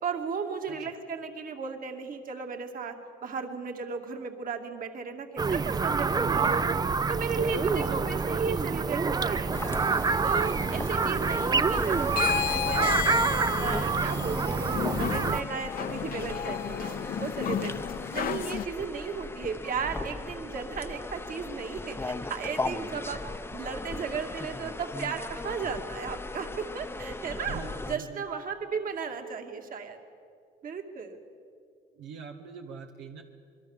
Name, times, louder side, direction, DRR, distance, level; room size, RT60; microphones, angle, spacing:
voice 1, 0.0-3.0 3.2-6.7 7.1-9.8 10.2-12.8 13.5-17.7 18.1-23.2 23.5-27.6 27.9-30.0 30.6-31.2, right 5 dB, 50° right, 4 dB, 2.5 m, -35 dB
sound 1, 5.4-15.4, right 5 dB, 20° right, 0.6 m, -27 dB
voice 2, 6.2-6.7 7.8-8.1 17.4-17.9 27.4-28.2 31.9-33.2, right 6 dB, 90° right, 3 dB, 1.8 m, -44 dB
sound 2, 9.5-27.9, left 3 dB, 15° left, 0.8 m, -38 dB
sound 3, 12.1-18.6, left 9 dB, 55° left, 0.8 m, -32 dB
26.0 x 22.0 x 7.4 m, 2.3 s
cardioid pair, 100°, 18 cm